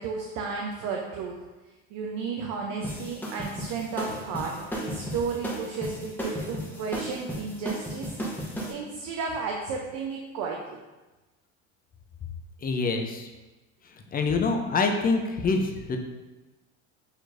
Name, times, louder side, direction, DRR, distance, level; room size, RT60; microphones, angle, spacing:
voice 1, 0.0-1.3 1.9-8.1 8.4-10.8, right 5 dB, 60° right, 0 dB, 0.7 m, -33 dB
sound 1, 2.8-8.7, equal, 5° left, 1.0 m, -34 dB
voice 2, 12.6-13.3 14.1-16.0, left 4 dB, 25° left, 4 dB, 0.6 m, -25 dB
6.7 x 3.0 x 2.6 m, 1.1 s
supercardioid pair, 95°, 36 cm